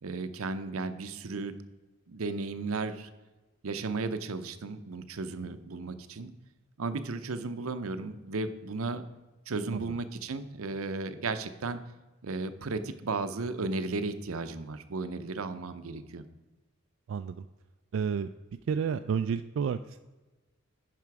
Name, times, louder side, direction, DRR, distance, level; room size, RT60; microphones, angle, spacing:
voice 1, 0.0-1.6 2.1-3.1 3.6-6.3 6.8-9.0 9.5-11.8 12.2-16.2, right 3 dB, 85° right, 10 dB, 0.7 m, -34 dB
voice 2, 17.1-17.4 17.9-18.3 18.7-20.0, right 6 dB, 65° right, 9 dB, 0.3 m, -30 dB
10.5 x 5.0 x 4.7 m, 1.2 s
head